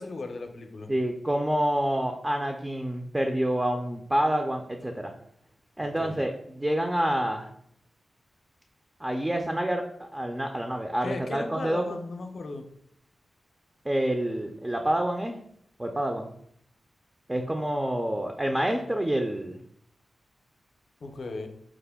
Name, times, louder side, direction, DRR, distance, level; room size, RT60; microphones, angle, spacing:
voice 1, 0.0-0.9 5.8-6.2 11.0-12.7 21.0-21.5, left 3 dB, 65° left, 6 dB, 0.5 m, -36 dB
voice 2, 0.9-5.1 5.8-7.5 9.0-12.0 13.8-15.4 15.8-16.3 17.3-19.6, right 1 dB, 15° right, 4 dB, 0.4 m, -28 dB
4.8 x 2.1 x 3.4 m, 0.67 s
wide cardioid pair, 80°, 0 cm